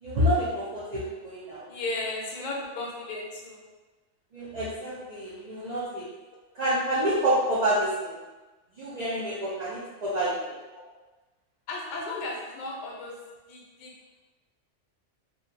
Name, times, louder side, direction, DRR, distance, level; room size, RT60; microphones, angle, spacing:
voice 1, 0.0-1.7 4.3-6.0 6.5-8.1 8.8-10.6, equal, 60° right, -8 dB, 0.4 m, -28 dB
voice 2, 1.7-3.7 10.7-10.8 11.7-13.1 13.5-13.9, left 2 dB, 55° left, -2 dB, 0.5 m, -35 dB
2.6 x 2.2 x 2.4 m, 1.2 s
omnidirectional pair, 1.3 m